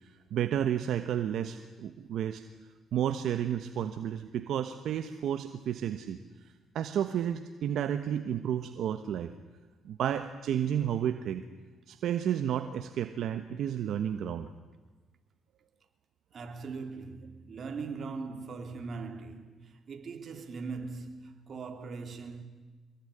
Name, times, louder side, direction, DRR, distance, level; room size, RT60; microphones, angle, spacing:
voice 1, 0.3-2.4 2.9-6.2 6.7-9.3 9.8-11.4 11.9-14.5, right 9 dB, 75° right, 1.2 m, -31 dB
voice 2, 16.3-22.4, right 4 dB, 50° right, 3.3 m, -40 dB
24.5 x 21.0 x 10.0 m
cardioid pair, 90°, 0 cm